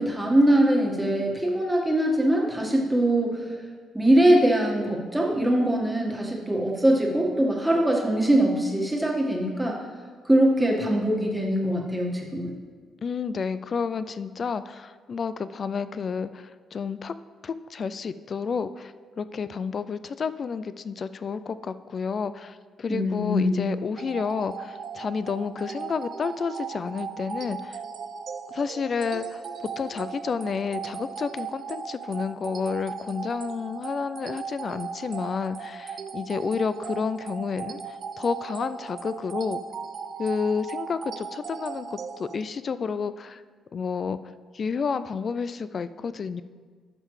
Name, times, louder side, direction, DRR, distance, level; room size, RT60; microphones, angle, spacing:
voice 1, 0.0-3.5 3.9-9.8 10.2-12.5 22.9-23.6, right 1 dB, 10° right, -2 dB, 1.6 m, -22 dB
voice 2, 13.0-17.1 17.4-27.8 28.5-29.4 29.8-39.6 40.2-43.4 43.7-44.2 44.5-46.4, left 5 dB, 45° left, 14 dB, 0.3 m, -30 dB
sound 1, 24.0-42.4, right 6 dB, 55° right, 0.5 m, -37 dB
13.0 x 5.6 x 3.2 m, 1.6 s
cardioid pair, 90°, 0 cm